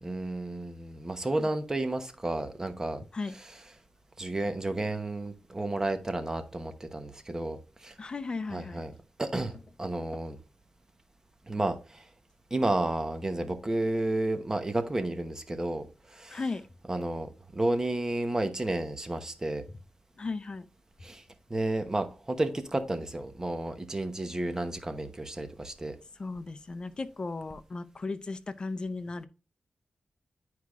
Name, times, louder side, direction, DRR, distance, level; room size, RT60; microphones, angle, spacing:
voice 1, 0.0-3.0 4.2-7.9 8.5-8.9 9.2-10.4 11.5-12.0 12.5-16.4 16.9-19.6 21.0-21.2 21.5-25.9, right 2 dB, 25° right, 1.0 m, -32 dB
voice 2, 8.0-8.8 16.3-16.7 20.2-20.7 26.2-29.3, left 3 dB, 40° left, 0.6 m, -36 dB
10.0 x 4.7 x 2.4 m
wide cardioid pair, 85°, 2 cm